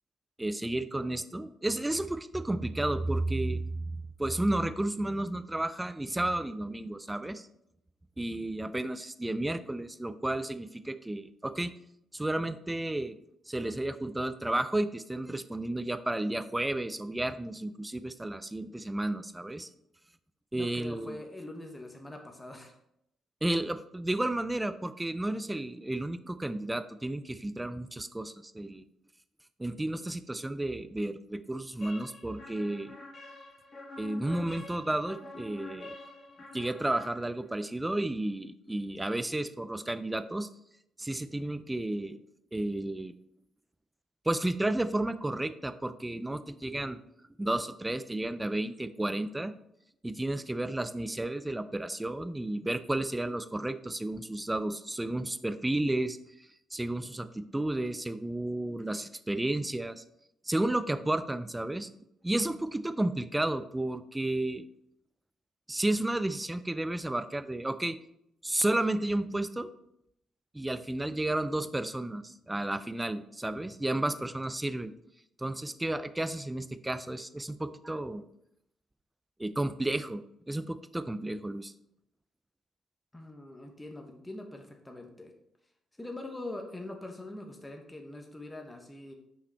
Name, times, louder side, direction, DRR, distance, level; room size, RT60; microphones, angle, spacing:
voice 1, 0.4-3.9 4.2-7.5 8.2-11.7 12.1-13.1 13.5-19.7 20.5-21.2 23.4-28.8 29.6-32.9 34.0-35.9 36.5-40.5 41.0-42.2 42.5-43.1 44.3-47.0 47.4-49.5 50.0-60.0 60.4-61.9 62.2-64.7 65.7-68.0 68.4-69.7 70.5-74.9 75.4-78.2 79.4-81.7, right 1 dB, 10° right, 12 dB, 0.4 m, -32 dB
voice 2, 20.5-22.7 83.1-85.3 86.0-89.1, left 2 dB, 10° left, 3 dB, 0.9 m, -43 dB
sound 1, 31.8-37.7, left 2 dB, 40° left, 1.9 m, -47 dB
5.6 x 5.1 x 3.4 m, 0.78 s
cardioid pair, 90°, 0 cm